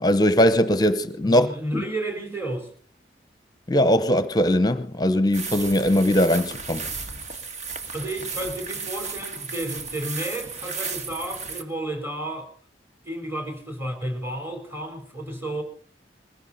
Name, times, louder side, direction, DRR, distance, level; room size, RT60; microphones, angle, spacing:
voice 1, 0.0-1.5 1.7-1.8 3.7-6.9, equal, 20° left, 0.9 m, -20 dB
voice 2, 1.2-2.7 7.9-12.5 13.0-15.6, right 1 dB, 15° right, 4.2 m, -32 dB
sound 1, 5.3-11.6, right 5 dB, 40° right, 1.7 m, -34 dB
21.5 x 16.0 x 4.2 m
head